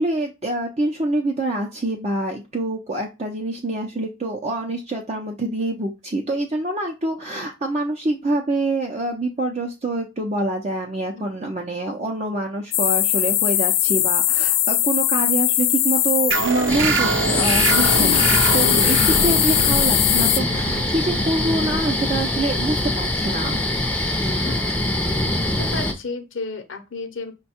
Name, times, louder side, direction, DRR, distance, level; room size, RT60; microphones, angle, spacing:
voice 1, 0.0-23.6, right 2 dB, 35° right, 1 dB, 0.6 m, -26 dB
sound 1, 12.7-20.4, left 13 dB, 50° left, 0.4 m, -20 dB
sound 2, 16.3-23.4, right 5 dB, 70° right, 0.5 m, -26 dB
sound 3, 16.7-25.9, left 1 dB, 5° left, 0.6 m, -23 dB
voice 2, 25.6-27.3, left 3 dB, 70° left, 7 dB, 0.8 m, -32 dB
5.4 x 2.3 x 4.3 m, 0.25 s
head